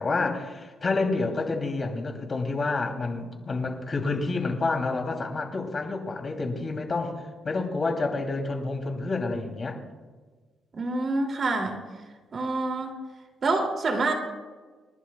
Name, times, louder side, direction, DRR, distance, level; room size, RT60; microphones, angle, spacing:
voice 1, 0.0-7.1 7.4-9.8, left 3 dB, 35° left, 3 dB, 2.8 m, -29 dB
voice 2, 10.7-11.8 12.3-12.9 13.4-14.1, right 3 dB, 45° right, 3 dB, 2.5 m, -27 dB
29.5 x 11.5 x 2.3 m, 1.4 s
cardioid pair, 90°, 0 cm